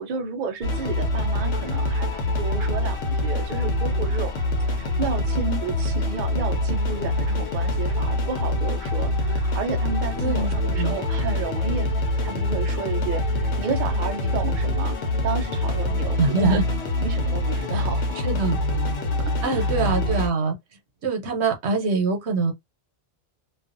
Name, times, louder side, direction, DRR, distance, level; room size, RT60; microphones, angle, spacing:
voice 1, 0.0-4.4 4.7-11.9 12.2-16.6 17.0-18.4 19.2-19.9, right 5 dB, 55° right, 0.6 m, -32 dB
sound 1, 0.6-20.3, left 1 dB, 85° left, 1.0 m, -25 dB
voice 2, 10.2-10.5 10.7-10.9 16.2-16.6 17.7-17.8 18.2-18.6 19.4-20.5 21.0-22.5, right 3 dB, 80° right, 1.0 m, -23 dB
2.4 x 2.3 x 2.5 m
omnidirectional pair, 1.1 m